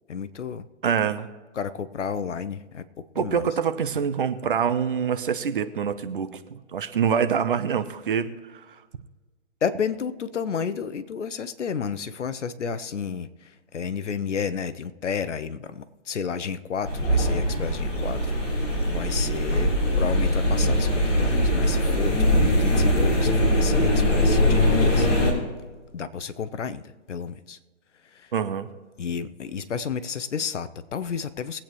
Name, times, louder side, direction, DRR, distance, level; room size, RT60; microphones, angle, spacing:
voice 1, 0.1-0.7 1.5-2.8 3.1-3.5 9.6-18.4 18.9-25.1 25.9-27.6 28.1-28.3 29.0-31.6, left 6 dB, 65° left, 13 dB, 1.0 m, -31 dB
voice 2, 0.8-1.3 3.2-8.6 28.3-28.7, right 7 dB, 45° right, 10 dB, 0.9 m, -25 dB
sound 1, 16.8-25.3, left 1 dB, 30° left, 3.8 m, -21 dB
22.5 x 8.7 x 3.1 m, 1.3 s
hypercardioid pair, 160°, 39 cm